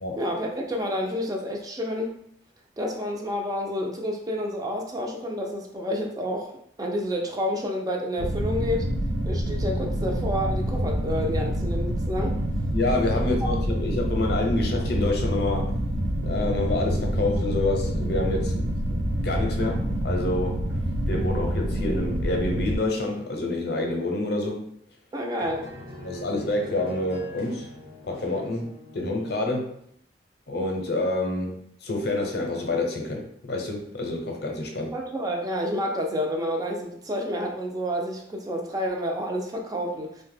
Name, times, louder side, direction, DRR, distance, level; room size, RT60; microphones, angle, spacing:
voice 1, 0.2-2.2 2.8-6.5 6.8-8.9 9.3-12.4 13.1-13.2 25.1-25.7 34.9-40.2, equal, 20° right, 1 dB, 0.4 m, -29 dB
sound 1, 8.2-22.8, equal, 85° right, 0.5 m, -27 dB
voice 2, 12.7-15.7 16.2-18.7 19.2-20.7 21.1-24.7 26.0-27.7 28.0-29.8 30.5-34.9, left 2 dB, 60° left, 2 dB, 0.6 m, -28 dB
sound 2, 25.4-29.5, equal, 55° right, 1.0 m, -43 dB
2.8 x 2.1 x 3.2 m, 0.68 s
head